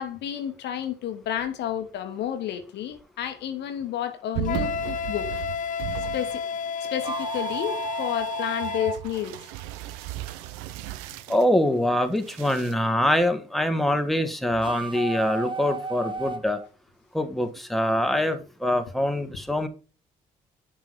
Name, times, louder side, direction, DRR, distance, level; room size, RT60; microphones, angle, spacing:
voice 1, 0.0-5.3 6.1-6.4 6.9-9.5, left 10 dB, 60° left, 1.2 m, -31 dB
sound 1, 4.3-6.6 6.8-11.5 12.1-12.7, right 15 dB, 65° right, 0.5 m, -37 dB
Wind instrument woodwind instrument, 4.4-9.0, left 6 dB, 40° left, 0.5 m, -31 dB
sound 2, 6.9-10.2 14.5-16.7, right 4 dB, 25° right, 0.8 m, -34 dB
voice 2, 11.3-16.6 17.1-19.7, left 1 dB, ahead, 1.4 m, -24 dB
10.0 x 3.7 x 5.9 m
figure-of-eight pair, 40°, 20 cm